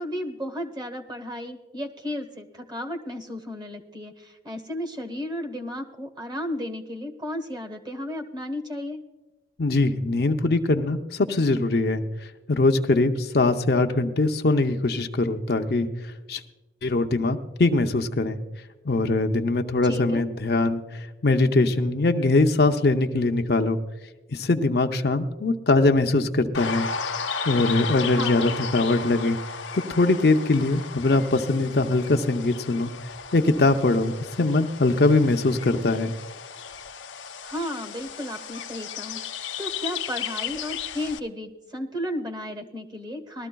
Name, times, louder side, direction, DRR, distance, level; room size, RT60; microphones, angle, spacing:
voice 1, 0.0-9.0 19.8-20.2 28.1-28.6 37.4-43.5, left 1 dB, 20° right, 5 dB, 1.1 m, -34 dB
voice 2, 9.6-12.0 12.5-15.9 16.3-16.4 16.8-18.4 18.8-23.8 24.3-26.9 27.5-29.4 29.7-32.9 33.3-36.1, left 2 dB, 55° left, 5 dB, 0.6 m, -22 dB
sound 1, 26.5-41.2, left 6 dB, 90° left, 0.7 m, -34 dB
20.5 x 13.0 x 2.3 m, 1.2 s
head